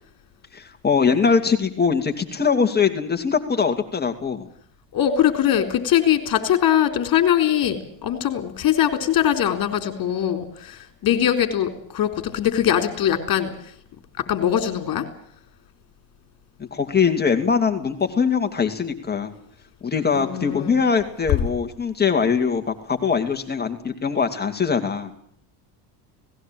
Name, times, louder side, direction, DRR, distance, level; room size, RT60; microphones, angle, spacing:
voice 1, 0.5-4.5 16.6-19.3 19.8-25.1, left 6 dB, 20° left, 5 dB, 2.7 m, -22 dB
voice 2, 4.9-13.5 14.3-15.1 20.1-20.7, left 10 dB, 45° left, 9 dB, 4.1 m, -21 dB
19.0 x 17.0 x 9.0 m, 0.63 s
cardioid pair, 125°, 49 cm